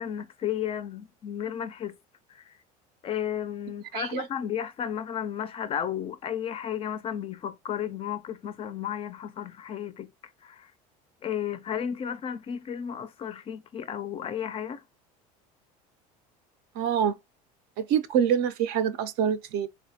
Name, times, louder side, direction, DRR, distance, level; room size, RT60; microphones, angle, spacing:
voice 1, 0.0-2.0 2.3-2.5 3.0-10.1 10.4-10.7 11.2-14.8, left 9 dB, 30° left, 0.4 m, -33 dB
voice 2, 3.9-4.2 16.8-17.1 17.8-19.7, right 8 dB, 60° right, 0.5 m, -25 dB
3.3 x 2.1 x 2.7 m
supercardioid pair, 110°, 18 cm